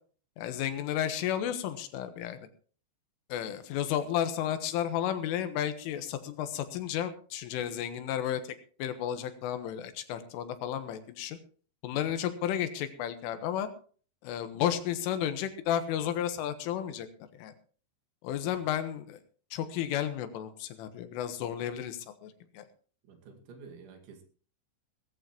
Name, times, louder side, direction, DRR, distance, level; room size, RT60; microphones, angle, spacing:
voice 1, 0.4-2.4 3.3-8.4 8.8-11.4 11.8-13.7 14.2-17.1 17.4-17.5 18.2-19.2 19.5-22.6, left 10 dB, 90° left, 9 dB, 3.9 m, -32 dB
voice 2, 23.0-24.2, right 5 dB, 75° right, 5 dB, 4.4 m, -51 dB
19.0 x 14.5 x 3.1 m, 0.42 s
omnidirectional pair, 5.6 m